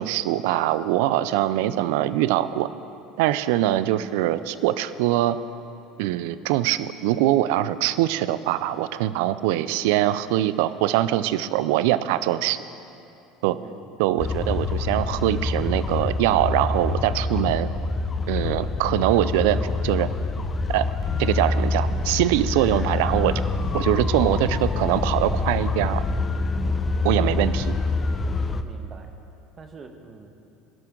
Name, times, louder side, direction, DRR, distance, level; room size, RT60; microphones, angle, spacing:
voice 1, 0.0-2.7 3.2-5.4 6.0-12.6 13.4-13.6 14.0-17.7 18.3-20.1 20.7-20.9 21.2-23.4 23.7-26.0 27.0-27.6, right 14 dB, 75° right, 15 dB, 0.4 m, -23 dB
voice 2, 13.5-14.0 26.9-27.5 28.6-29.1 29.6-30.3, right 4 dB, 35° right, 5 dB, 1.3 m, -45 dB
sound 1, 14.2-28.6, left 3 dB, 25° left, 0.7 m, -26 dB
17.0 x 11.5 x 3.8 m, 2.8 s
supercardioid pair, 90°, 0 cm